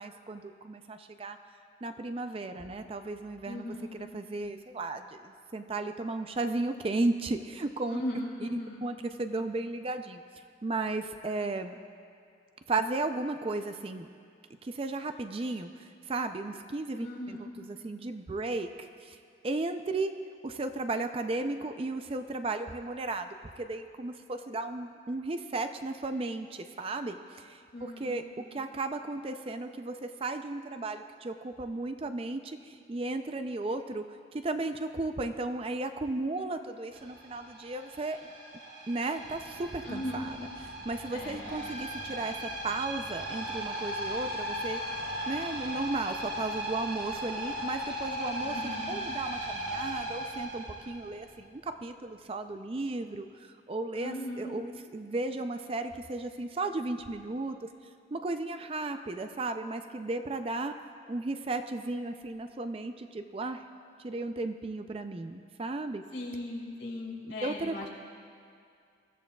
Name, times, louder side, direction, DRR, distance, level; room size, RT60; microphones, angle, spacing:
voice 1, 0.0-1.4 1.8-8.0 8.4-8.5 8.8-10.2 10.6-11.8 12.7-14.1 14.6-19.2 19.4-20.1 20.4-34.1 34.3-38.3 38.9-44.8 45.3-48.6 48.9-57.7 58.1-60.7 61.1-63.7 64.0-66.0 67.4-67.9, right 2 dB, 30° right, 8 dB, 0.4 m, -35 dB
voice 2, 3.4-3.9 7.9-8.9 17.0-17.5 27.7-28.5 39.8-40.2 41.1-41.8 48.4-48.9 53.9-54.5 66.1-67.9, left 1 dB, 65° left, -4 dB, 2.9 m, -38 dB
sound 1, 36.9-51.5, equal, 80° right, 2.7 m, -37 dB
23.0 x 13.5 x 2.3 m, 2.4 s
head